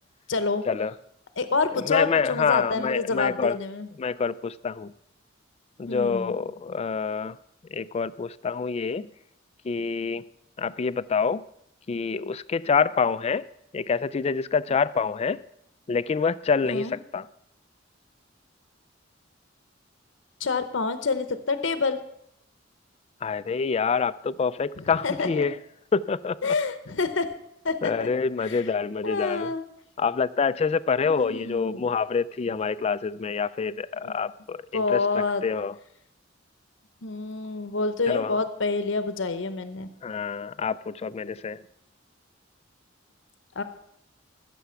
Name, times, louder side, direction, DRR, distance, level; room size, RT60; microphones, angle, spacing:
voice 1, 0.3-0.6 1.4-3.9 5.9-6.4 16.6-16.9 20.4-22.0 24.8-25.5 26.4-27.3 27.6-28.1 28.4-28.6 29.0-29.6 31.1-31.9 34.0-34.1 34.7-35.4 37.0-39.9 43.6-43.7, left 4 dB, 70° left, 0.8 m, -27 dB
voice 2, 1.7-3.6 4.0-4.9 5.8-7.4 7.7-9.1 9.6-10.3 10.6-11.4 11.9-13.5 13.7-15.4 15.9-17.3 23.2-25.6 25.9-26.5 27.8-29.5 30.0-35.7 38.1-38.4 40.0-41.6, left 5 dB, 35° left, 0.3 m, -26 dB
14.5 x 6.9 x 5.7 m
head